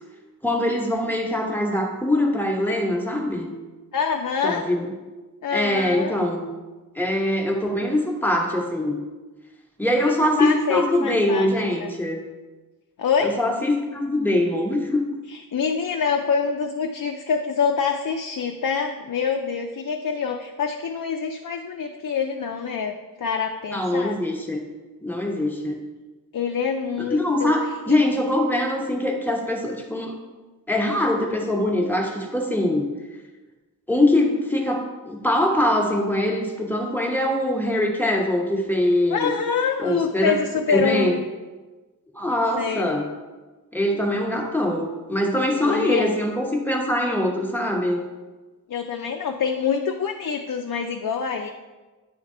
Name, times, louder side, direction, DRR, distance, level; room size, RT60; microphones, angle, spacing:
voice 1, 0.4-3.5 4.4-4.9 5.5-6.5 6.9-9.0 9.8-12.2 13.2-15.0 23.7-24.6 25.0-25.8 27.0-30.1 30.7-32.8 33.9-39.3 39.8-40.4 40.7-41.2 42.1-43.0 43.7-48.0, left 1 dB, 5° left, 0 dB, 1.1 m, -23 dB
voice 2, 3.9-4.7 5.4-6.1 10.0-11.9 13.0-13.4 15.5-24.2 26.3-27.5 27.9-28.0 39.1-41.2 42.6-42.9 45.6-46.2 48.7-51.5, left 6 dB, 65° left, 4 dB, 0.5 m, -26 dB
9.4 x 3.4 x 3.7 m, 1.2 s
wide cardioid pair, 70°, 35 cm